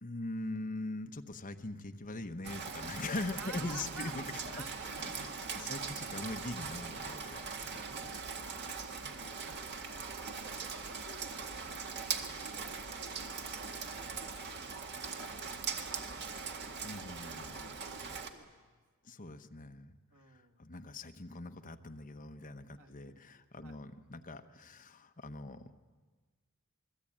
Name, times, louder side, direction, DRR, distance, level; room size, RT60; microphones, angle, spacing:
voice 1, 0.0-4.6 4.9-8.1 9.0-9.3 16.8-18.1 19.0-20.0 20.3-25.6, left 2 dB, 40° left, 7 dB, 1.1 m, -42 dB
Rain, 2.4-18.3, right 5 dB, 55° right, 2.0 m, -41 dB
voice 2, 3.4-4.1 4.5-6.0 7.5-10.0 10.4-14.3 15.0-16.6 17.8-18.8 20.1-20.6 22.8-22.9 23.6-23.8, right 3 dB, 85° right, 4 dB, 2.1 m, -54 dB
28.0 x 21.5 x 8.8 m, 1.4 s
head